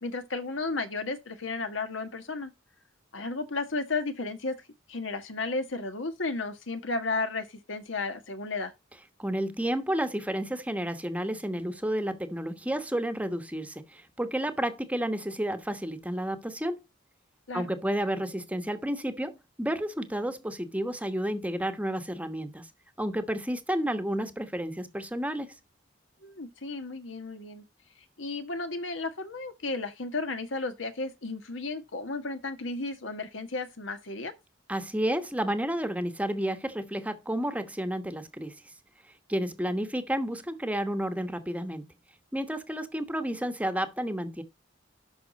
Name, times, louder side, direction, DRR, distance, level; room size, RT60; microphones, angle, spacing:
voice 1, 0.0-2.5 3.1-4.5 4.9-8.7 17.5-17.7 26.2-27.6 28.2-34.3, left 3 dB, 75° left, 1.5 m, -33 dB
voice 2, 9.2-16.8 17.5-22.7 23.0-25.5 34.7-38.6 39.3-41.8 42.3-44.4, right 1 dB, 5° right, 1.1 m, -31 dB
11.5 x 5.9 x 4.0 m
head